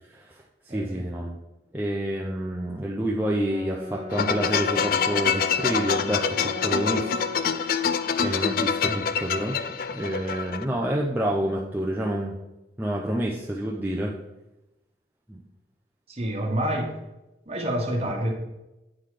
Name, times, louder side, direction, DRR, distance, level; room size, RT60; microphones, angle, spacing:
voice 1, 0.1-1.4 1.7-7.1 7.4-7.9 8.2-9.6 9.9-12.3 12.8-14.2 15.3-15.4, right 1 dB, 10° right, -3 dB, 0.5 m, -28 dB
voice 2, 0.7-1.1 8.8-9.0 16.1-17.0 17.5-18.3, right 1 dB, 35° right, 1 dB, 1.2 m, -28 dB
Brass instrument, 3.2-7.5, left 3 dB, 20° left, 1.3 m, -37 dB
sound 1, 4.1-10.6, left 7 dB, 50° left, 0.3 m, -26 dB
8.7 x 3.9 x 4.9 m, 0.98 s
head